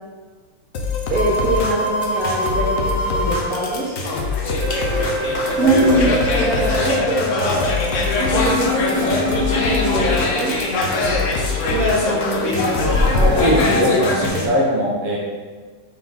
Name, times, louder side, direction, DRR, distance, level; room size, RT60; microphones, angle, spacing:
sound 1, 0.7-14.5, left 4 dB, 55° left, 0.9 m, -26 dB
sound 2, 1.1-3.4 4.6-7.0 8.2-10.0, left 1 dB, 5° right, 1.5 m, -24 dB
voice 1, 1.1-3.9 5.6-7.6 8.3-10.6 11.7-14.1, right 1 dB, 40° right, -8 dB, 2.4 m, -23 dB
sound 3, 4.0-14.3, left 2 dB, 80° left, 0.6 m, -22 dB
voice 2, 13.4-15.2, equal, 85° right, -3 dB, 2.2 m, -20 dB
7.9 x 4.3 x 3.6 m, 1.5 s
omnidirectional pair, 2.4 m